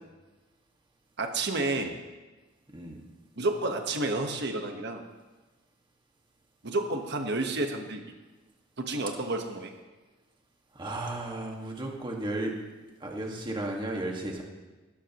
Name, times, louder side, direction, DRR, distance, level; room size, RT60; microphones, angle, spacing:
voice 1, 1.2-2.0 3.4-5.0 6.6-8.0 8.8-9.7, right 2 dB, 60° right, 4 dB, 1.4 m, -30 dB
voice 2, 2.7-3.0 10.7-12.6 13.0-14.4, right 1 dB, 25° right, 0 dB, 1.9 m, -34 dB
18.5 x 12.5 x 3.1 m, 1.2 s
head